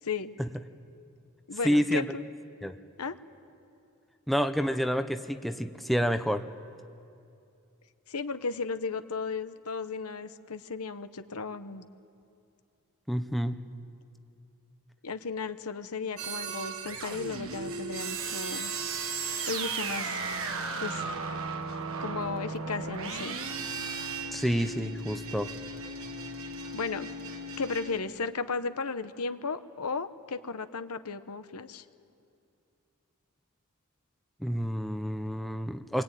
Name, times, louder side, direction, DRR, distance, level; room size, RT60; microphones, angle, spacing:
voice 1, 0.0-0.3 1.5-2.2 3.0-3.2 8.1-11.8 15.0-18.7 19.5-20.1 20.8-21.0 22.0-23.4 26.7-27.1 27.6-31.8, left 4 dB, 80° left, 10 dB, 1.0 m, -35 dB
voice 2, 1.6-2.0 2.6-2.8 4.3-6.4 13.1-13.6 24.3-25.5 34.4-36.0, equal, ahead, 7 dB, 0.7 m, -28 dB
sound 1, 16.2-28.0, right 4 dB, 65° right, 1.6 m, -36 dB
27.0 x 23.5 x 9.2 m, 2.6 s
head